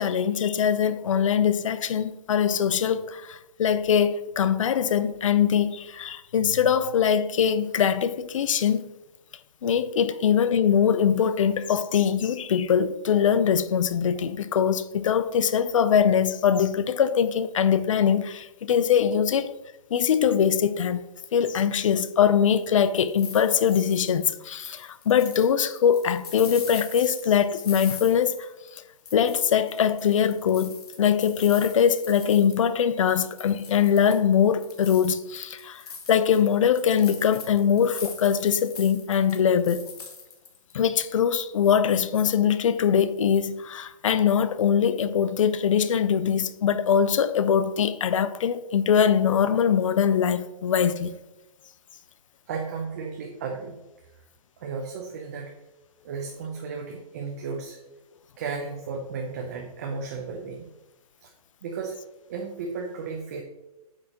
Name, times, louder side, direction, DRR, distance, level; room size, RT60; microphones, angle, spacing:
voice 1, 0.0-8.9 9.6-19.5 19.9-21.0 21.3-28.5 29.1-35.8 36.1-39.8 40.7-51.1, left 8 dB, 55° left, 0.5 m, -22 dB
sound 1, 22.6-28.8 29.1-32.8 33.1-34.3 34.6-40.7, left 5 dB, 75° left, 2.1 m, -42 dB
voice 2, 52.5-53.8 54.6-55.5 56.0-57.8 58.4-60.7 61.2-61.3 61.6-62.0 62.3-63.4, right 5 dB, 25° right, 0.6 m, -34 dB
8.8 x 6.3 x 2.9 m
hypercardioid pair, 175°, 20 cm